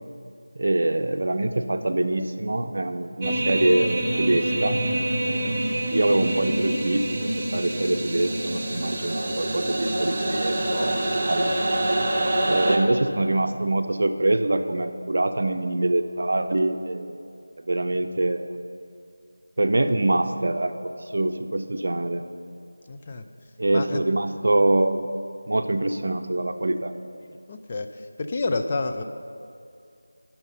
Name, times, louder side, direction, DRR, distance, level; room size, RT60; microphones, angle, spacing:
voice 1, 0.6-4.8 5.2-5.5 5.9-11.5 12.5-17.2 17.7-18.6 19.6-22.2 23.6-25.1 25.5-26.9, right 2 dB, 55° right, 8 dB, 0.6 m, -24 dB
sound 1, 3.2-12.8, right 1 dB, 20° right, 1.0 m, -26 dB
voice 2, 22.9-23.3 23.7-24.0 27.2-29.0, left 3 dB, 25° left, 5 dB, 0.4 m, -30 dB
10.5 x 5.9 x 5.6 m, 2.5 s
figure-of-eight pair, 170°, 0 cm